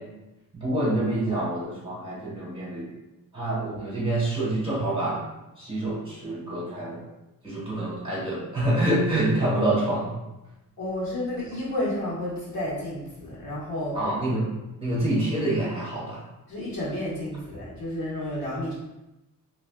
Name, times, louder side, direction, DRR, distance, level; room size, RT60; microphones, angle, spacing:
voice 1, 0.5-2.9 3.3-5.2 5.6-7.0 7.4-10.2 13.9-14.5 14.8-16.2, right 1 dB, 15° right, -7 dB, 1.4 m, -26 dB
voice 2, 10.8-14.0 16.5-18.7, left 1 dB, 80° left, -7 dB, 1.4 m, -31 dB
3.6 x 3.0 x 2.3 m, 0.97 s
wide cardioid pair, 140°, 34 cm